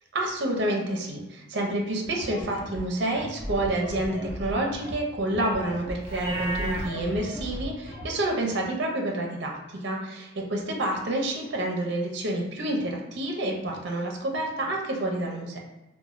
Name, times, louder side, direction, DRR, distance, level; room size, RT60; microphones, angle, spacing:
voice 1, 0.1-15.6, right 1 dB, 55° right, 0 dB, 0.5 m, -29 dB
sound 1, 2.1-8.1, equal, 60° left, 1.3 m, -37 dB
Livestock farm animals working animals, 6.0-6.9, right 1 dB, 25° right, 0.8 m, -32 dB
3.0 x 2.2 x 2.4 m, 1.0 s
head